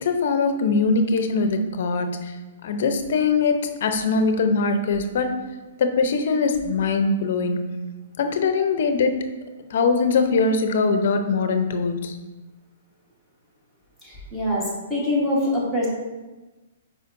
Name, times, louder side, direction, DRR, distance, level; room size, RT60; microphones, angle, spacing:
voice 1, 0.0-2.3 2.6-5.3 5.8-7.6 8.2-9.1 9.7-12.2, left 4 dB, 45° left, 7 dB, 0.7 m, -22 dB
voice 2, 14.0-15.9, left 1 dB, 5° right, -7 dB, 1.4 m, -24 dB
8.1 x 5.0 x 2.7 m, 1.2 s
hypercardioid pair, 175°, 0 cm